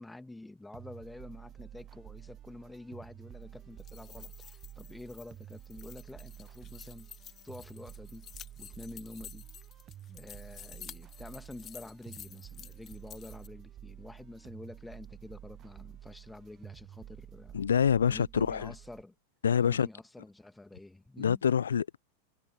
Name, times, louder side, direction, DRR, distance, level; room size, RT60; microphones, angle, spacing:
voice 1, 0.0-7.1 7.4-8.3 8.6-9.5 10.1-17.6 18.0-19.1 19.6-21.4, left 2 dB, 5° left, 2.5 m, -48 dB
sound 1, 0.7-19.0, right 11 dB, 30° right, 1.3 m, -50 dB
sound 2, 3.7-13.5, left 10 dB, 30° left, 1.4 m, -51 dB
voice 2, 17.5-18.7 19.4-19.9 21.2-22.0, left 7 dB, 70° left, 0.4 m, -26 dB
figure-of-eight pair, 90°, 0 cm